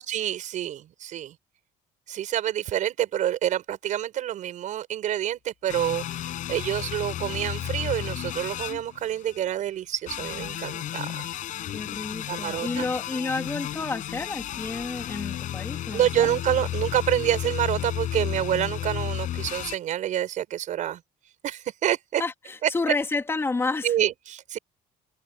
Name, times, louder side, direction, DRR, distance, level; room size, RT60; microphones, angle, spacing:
voice 1, 0.1-1.3 2.1-6.1 6.5-11.3 12.3-12.8 15.9-21.0 21.4-22.2 22.6-22.7 23.8-24.6, right 11 dB, 50° right, 6.3 m, -27 dB
sound 1, 5.7-9.4 10.1-19.8, left 12 dB, 50° left, 6.7 m, -33 dB
voice 2, 11.7-16.3 22.2-23.9, left 3 dB, 15° left, 2.7 m, -30 dB
cardioid pair, 170°, 17 cm